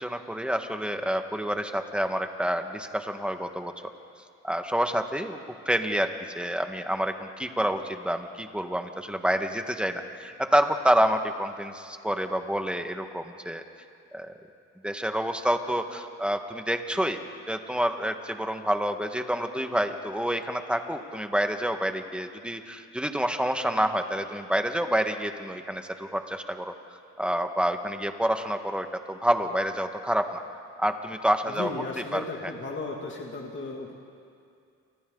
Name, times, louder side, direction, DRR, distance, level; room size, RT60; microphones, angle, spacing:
voice 1, 0.0-3.7 4.4-5.4 5.6-13.6 14.1-14.3 14.8-17.2 17.5-26.7 27.2-30.4 30.8-32.5, equal, 5° right, 6 dB, 1.6 m, -28 dB
voice 2, 31.5-33.9, left 3 dB, 40° left, -1 dB, 2.6 m, -35 dB
30.0 x 26.0 x 4.0 m, 2.4 s
cardioid pair, 90°, 30 cm